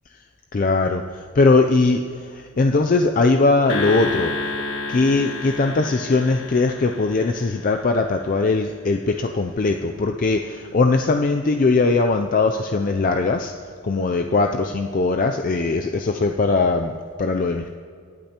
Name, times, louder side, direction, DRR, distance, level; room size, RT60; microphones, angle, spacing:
voice 1, 0.5-1.0 1.4-2.0 2.6-4.3 4.9-13.5 13.8-16.9 17.2-17.8, left 3 dB, 40° left, 4 dB, 0.4 m, -20 dB
sound 1, 3.7-8.2, left 2 dB, 65° left, 1.3 m, -30 dB
23.0 x 8.7 x 2.9 m, 2.1 s
head